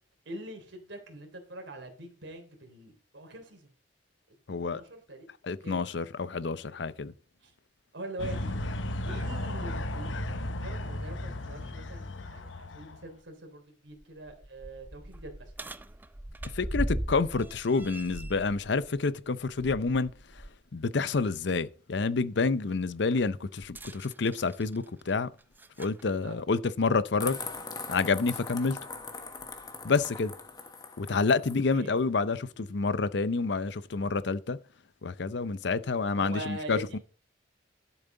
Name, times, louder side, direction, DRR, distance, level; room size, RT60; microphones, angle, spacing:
voice 1, 0.2-3.7 4.7-5.3 5.6-5.8 7.4-7.5 7.9-8.8 9.0-15.5 26.2-26.4 31.7-32.0 36.1-37.0, right 1 dB, 80° right, 3.3 m, -43 dB
voice 2, 4.5-4.8 5.4-7.1 16.5-20.4 20.7-25.3 25.8-27.4 27.9-28.8 29.8-30.3 31.0-34.6 35.0-37.0, left 4 dB, 65° left, 0.6 m, -28 dB
sound 1, 8.2-13.1, left 1 dB, 85° left, 0.9 m, -35 dB
sound 2, 13.2-13.3 13.9-20.6 21.0-21.2 23.6-26.0 27.0-27.1 27.9-28.0, right 1 dB, 10° right, 0.4 m, -39 dB
sound 3, 27.2-31.6, left 4 dB, 20° left, 1.2 m, -41 dB
12.0 x 7.3 x 3.9 m
head